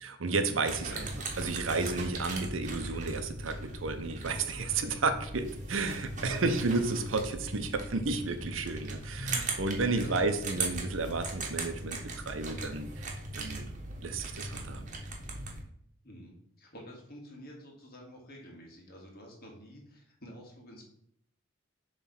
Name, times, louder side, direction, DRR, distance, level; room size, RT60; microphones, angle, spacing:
voice 1, 0.0-1.1 1.4-13.7 14.0-14.9, right 3 dB, 75° right, 9 dB, 0.8 m, -32 dB
sound 1, 0.6-15.6, right 2 dB, 40° right, 1.2 m, -39 dB
voice 2, 16.0-20.9, equal, 50° left, -1 dB, 2.0 m, -49 dB
7.2 x 3.4 x 5.8 m, 0.69 s
head